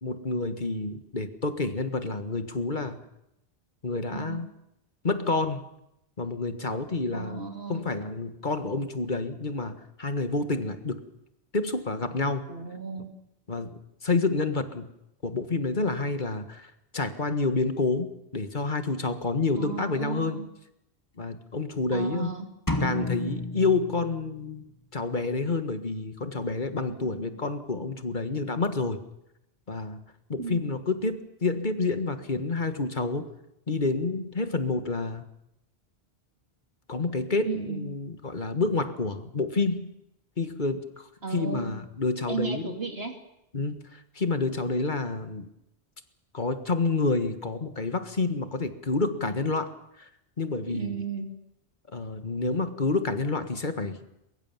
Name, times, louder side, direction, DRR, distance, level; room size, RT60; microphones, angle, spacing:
voice 1, 0.0-3.0 3.8-4.5 5.0-5.6 6.2-7.4 7.7-11.0 11.5-12.5 13.5-14.8 15.2-20.4 21.2-22.3 22.8-24.6 24.9-29.0 29.7-30.0 30.3-33.3 33.7-35.2 36.9-39.9 40.4-42.7 43.5-45.5 46.3-49.7 50.0-50.1 50.4-51.0 51.9-54.0, left 3 dB, 50° left, 9 dB, 1.7 m, -29 dB
voice 2, 4.1-4.4 7.1-7.9 12.5-13.1 19.6-20.5 21.9-22.5 27.0-27.3 30.4-30.7 37.4-37.9 41.2-41.7 42.3-43.1 50.7-51.3, right 5 dB, 75° right, 5 dB, 3.1 m, -35 dB
sound 1, 22.7-24.7, left 2 dB, 20° left, 2.2 m, -31 dB
22.5 x 22.0 x 7.3 m, 0.81 s
omnidirectional pair, 1.0 m